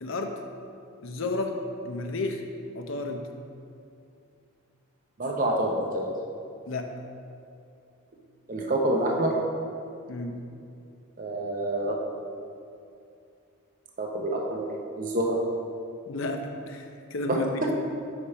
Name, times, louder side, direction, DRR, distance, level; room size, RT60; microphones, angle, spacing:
voice 1, 0.0-0.4 1.0-1.5 1.8-2.4 2.7-3.3 6.7-6.9 10.1-10.4 16.1-17.6, left 2 dB, 60° left, 4 dB, 0.6 m, -32 dB
voice 2, 5.2-6.1 8.5-9.3 11.2-12.0 14.0-14.7 15.0-15.4 17.3-17.4, right 1 dB, 35° right, -1 dB, 0.6 m, -27 dB
6.9 x 5.0 x 4.3 m, 2.5 s
head